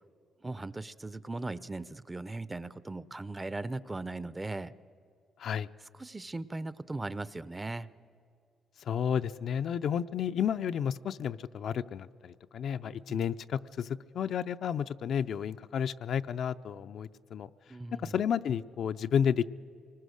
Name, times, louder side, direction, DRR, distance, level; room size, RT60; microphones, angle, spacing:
voice 1, 0.4-4.7 5.9-7.9 12.8-13.2 17.7-18.1, right 2 dB, 20° right, 17 dB, 0.6 m, -38 dB
voice 2, 8.9-17.5 18.0-19.5, left 8 dB, 65° left, 10 dB, 0.5 m, -31 dB
24.5 x 19.5 x 6.5 m, 2.4 s
cardioid pair, 90°, 0 cm